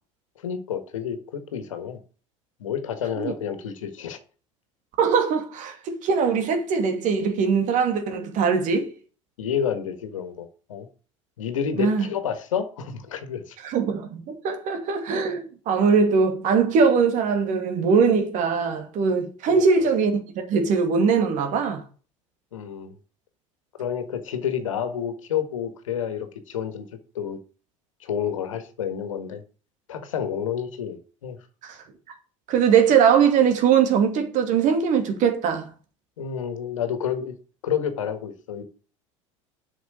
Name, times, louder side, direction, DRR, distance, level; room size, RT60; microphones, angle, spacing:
voice 1, 0.4-2.0 2.6-4.2 9.4-10.9 11.4-13.5 19.5-19.6 22.5-23.0 23.8-26.9 27.1-27.4 28.0-29.4 29.9-31.4 36.2-37.3 37.6-38.6, left 8 dB, 75° left, 1.7 m, -29 dB
voice 2, 5.0-8.9 11.8-12.1 13.6-20.2 20.5-21.8 31.6-31.8 32.5-35.7, right 6 dB, 50° right, 2.5 m, -21 dB
8.2 x 6.1 x 6.9 m
hypercardioid pair, 75°, 17 cm